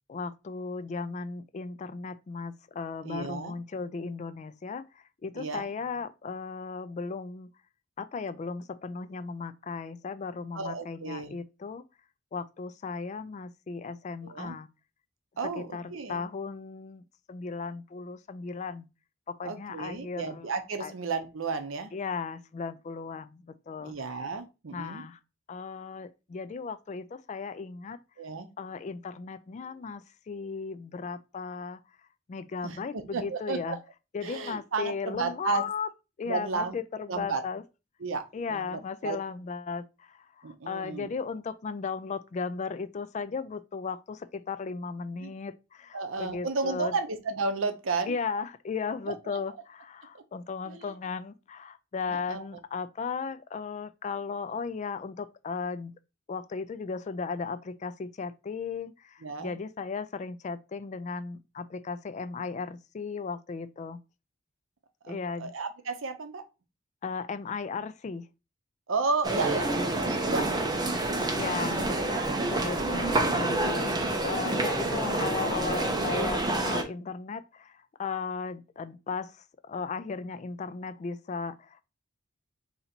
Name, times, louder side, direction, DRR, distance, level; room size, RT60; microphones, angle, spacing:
voice 1, 0.1-7.5 8.0-11.8 12.3-14.7 15.6-15.8 16.1-18.9 19.3-20.5 20.8-20.9 21.9-24.3 24.7-25.2 25.5-28.0 28.6-31.8 32.3-33.8 34.1-35.9 36.2-37.6 38.3-46.9 48.1-55.9 56.3-64.0 65.1-65.5 67.0-68.3 71.3-74.0 74.2-81.8, left 5 dB, 35° left, 0.3 m, -36 dB
voice 2, 3.0-3.6 5.3-5.7 10.5-11.4 14.2-14.6 15.4-16.2 19.4-21.9 23.8-25.1 28.2-28.5 32.6-33.8 34.2-35.6 36.3-36.8 37.1-37.4 38.0-39.2 40.4-41.1 45.2-45.3 45.9-48.1 49.1-49.2 50.1-50.2 50.6-50.9 52.1-52.4 59.2-59.6 65.0-66.4 68.9-70.5 70.8-72.3 74.1-74.3, right 4 dB, 70° right, 0.7 m, -33 dB
sound 1, 69.2-76.8, right 2 dB, 20° right, 0.7 m, -28 dB
3.9 x 2.8 x 4.3 m
head